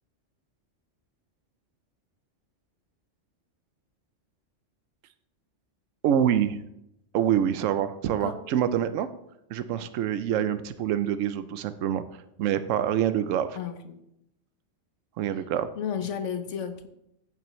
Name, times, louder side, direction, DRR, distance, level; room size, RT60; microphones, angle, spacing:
voice 1, 6.0-6.6 7.1-9.1 9.5-12.0 12.4-13.6 15.2-15.7, right 9 dB, 85° right, 12 dB, 0.9 m, -26 dB
voice 2, 8.1-8.4 10.4-10.5 13.5-14.0 15.8-16.9, left 8 dB, 75° left, 9 dB, 1.1 m, -33 dB
14.5 x 5.8 x 3.1 m, 0.80 s
omnidirectional pair, 1.3 m